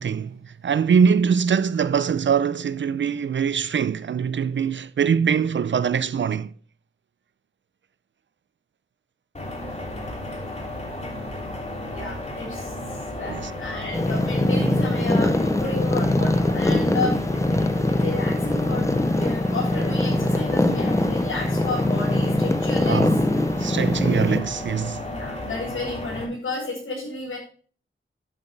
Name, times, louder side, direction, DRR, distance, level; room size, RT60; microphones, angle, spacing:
voice 1, 0.0-6.5 13.3-13.5 22.9-23.2 23.6-25.0, right 7 dB, 65° right, 0.5 m, -23 dB
sound 1, 9.3-26.2, left 1 dB, 30° left, 2.8 m, -34 dB
voice 2, 11.8-12.7 13.2-17.2 18.0-18.9 19.2-23.0 25.1-27.4, left 2 dB, 90° left, 5.4 m, -32 dB
sound 2, 13.9-24.4, left 1 dB, 15° left, 0.7 m, -22 dB
11.0 x 8.2 x 3.3 m
wide cardioid pair, 120°, 21 cm